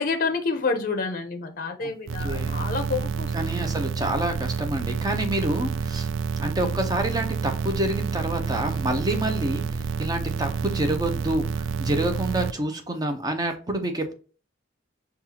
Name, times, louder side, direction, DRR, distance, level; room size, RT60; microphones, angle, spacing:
voice 1, 0.0-3.3, left 4 dB, 45° left, 6 dB, 0.5 m, -28 dB
sound 1, 2.1-12.5, right 6 dB, 75° right, 0.3 m, -29 dB
voice 2, 2.2-2.7 3.3-6.1 6.4-14.1, right 1 dB, 20° right, 5 dB, 0.6 m, -28 dB
5.3 x 2.4 x 2.9 m, 0.37 s
head